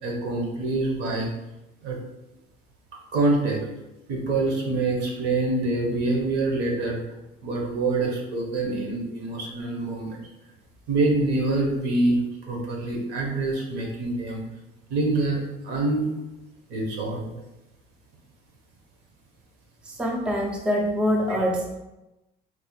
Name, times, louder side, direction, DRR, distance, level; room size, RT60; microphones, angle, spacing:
voice 1, 0.0-1.3 1.8-2.0 2.9-3.6 4.1-7.0 7.4-10.2 10.9-14.4 14.9-15.4 15.6-16.1 16.7-17.3 21.3-21.4, right 2 dB, 75° right, -1 dB, 1.0 m, -25 dB
voice 2, 19.9-21.8, equal, 5° right, 0 dB, 0.3 m, -25 dB
3.9 x 3.0 x 2.3 m, 0.97 s
cardioid pair, 165°, 17 cm